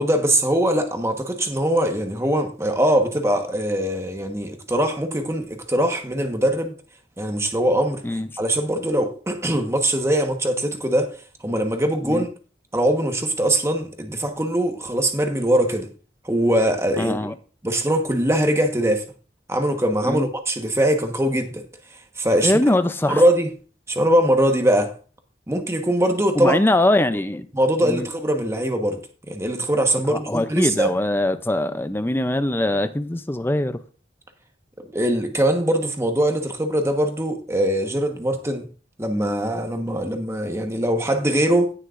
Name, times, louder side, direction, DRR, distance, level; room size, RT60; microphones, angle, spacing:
voice 1, 0.0-6.7 7.2-8.0 8.4-12.3 12.7-15.9 16.2-17.1 17.6-19.0 19.5-21.6 22.2-22.5 23.1-23.5 23.9-24.9 25.5-26.6 27.5-30.9 34.9-38.7 39.0-41.7, right 1 dB, 15° right, 1.2 m, -22 dB
voice 2, 17.0-17.4 20.1-20.3 22.4-23.2 26.3-27.5 27.8-28.1 30.1-33.8, left 1 dB, 10° left, 0.5 m, -22 dB
17.5 x 6.4 x 2.5 m
head